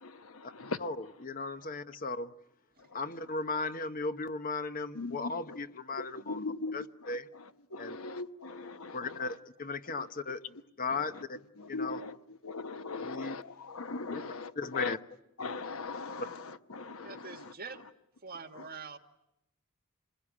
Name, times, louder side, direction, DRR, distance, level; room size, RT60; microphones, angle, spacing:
voice 1, 0.0-0.8 5.0-5.6 6.0-7.1 7.7-9.2 11.6-12.1 12.4-14.9 15.4-16.4 16.7-17.5, left 3 dB, 75° left, 1.2 m, -39 dB
voice 2, 0.8-2.3 2.9-6.4 6.7-7.3 7.8-8.0 8.9-10.4 10.8-11.4 11.7-12.0 13.0-13.4 14.1-14.2 14.6-15.0 16.2-16.3, left 3 dB, 40° left, 1.0 m, -36 dB
voice 3, 16.9-17.8 18.2-19.0, right 4 dB, 45° right, 1.8 m, -44 dB
27.0 x 21.0 x 10.0 m
head